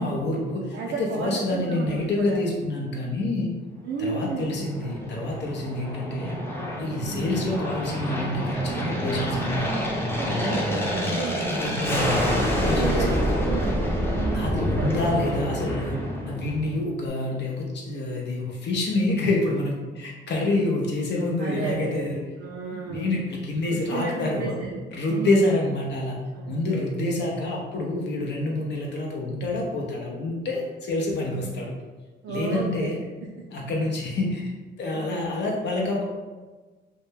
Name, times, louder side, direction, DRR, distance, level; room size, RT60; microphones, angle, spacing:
voice 1, 0.0-3.5 4.0-6.4 6.8-9.7 11.5-13.2 14.3-22.2 22.7-24.5 24.9-26.2 26.5-31.7 32.3-33.0 33.5-36.0, left 2 dB, 60° left, -1 dB, 0.5 m, -27 dB
voice 2, 0.7-2.5 3.8-4.7 7.0-7.4 10.2-12.0 12.6-13.8 14.1-15.0 21.4-23.2 23.7-24.8 25.1-25.5 26.3-26.9 31.4-31.5 32.2-32.9 34.9-35.3, right 4 dB, 70° right, -3 dB, 0.4 m, -33 dB
Aircraft, 4.1-16.8, equal, 10° left, 0.5 m, -27 dB
2.1 x 2.1 x 3.2 m, 1.3 s
cardioid pair, 90°, 20 cm